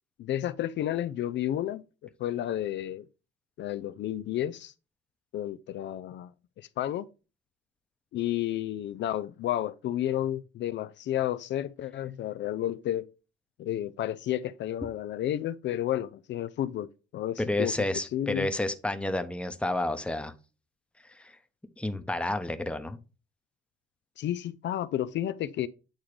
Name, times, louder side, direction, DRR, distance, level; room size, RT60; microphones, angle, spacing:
voice 1, 0.2-3.1 3.6-4.7 5.3-6.3 6.6-7.1 8.1-13.1 13.6-16.9 17.1-17.7 18.1-18.5 24.2-25.7, left 12 dB, 65° left, 0.4 m, -31 dB
voice 2, 17.4-20.3 21.2-21.3 21.8-23.0, left 1 dB, 5° left, 0.8 m, -30 dB
8.7 x 3.6 x 3.2 m
cardioid pair, 90°, 20 cm